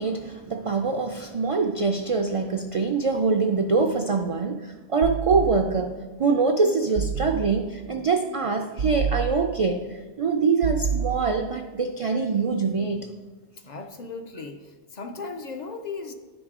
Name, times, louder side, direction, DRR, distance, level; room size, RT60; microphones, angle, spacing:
voice 1, 0.0-13.0, right 4 dB, 60° right, 5 dB, 0.3 m, -24 dB
sound 1, 5.0-6.0 7.0-7.9 8.8-9.9 10.6-11.7, right 6 dB, 90° right, 0.8 m, -30 dB
voice 2, 13.6-16.1, left 4 dB, 55° left, 5 dB, 0.5 m, -36 dB
10.0 x 5.0 x 3.6 m, 1.3 s
omnidirectional pair, 1.1 m